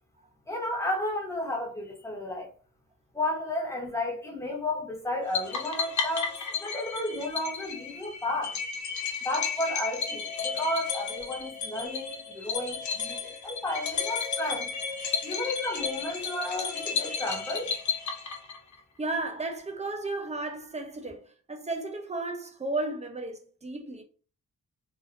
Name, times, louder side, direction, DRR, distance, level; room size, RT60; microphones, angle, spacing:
voice 1, 0.5-2.5 3.1-8.6 9.2-14.7 15.2-17.7, left 1 dB, 10° left, 0.8 m, -32 dB
sound 1, 5.3-18.8, left 6 dB, 60° left, 0.7 m, -33 dB
voice 2, 19.0-24.0, right 2 dB, 20° right, 0.4 m, -34 dB
3.6 x 2.5 x 2.4 m
wide cardioid pair, 165°, 34 cm